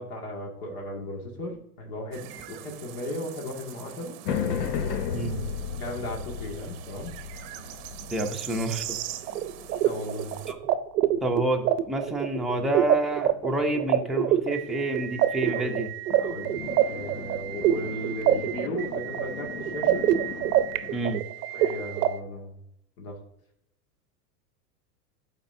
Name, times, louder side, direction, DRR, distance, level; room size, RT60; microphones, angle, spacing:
voice 1, 0.0-2.3 2.6-4.2 5.8-7.1 8.2-8.3 9.8-10.4 11.1-11.2 15.5-15.8 16.2-16.6 16.9-20.1 21.5-22.6 23.0-23.2, left 1 dB, 65° left, 0 dB, 2.1 m, -36 dB
sound 1, 2.1-10.5, right 12 dB, 45° right, 0.7 m, -42 dB
sound 2, 4.2-10.8 16.1-21.0, left 7 dB, 90° left, 0.8 m, -36 dB
voice 2, 8.1-8.8 10.5-10.6 11.2-15.9 20.9-21.2, right 1 dB, ahead, 0 dB, 0.6 m, -28 dB
sound 3, 9.3-22.1, right 12 dB, 80° right, 0.7 m, -26 dB
11.5 x 4.3 x 2.7 m, 0.77 s
supercardioid pair, 125°, 47 cm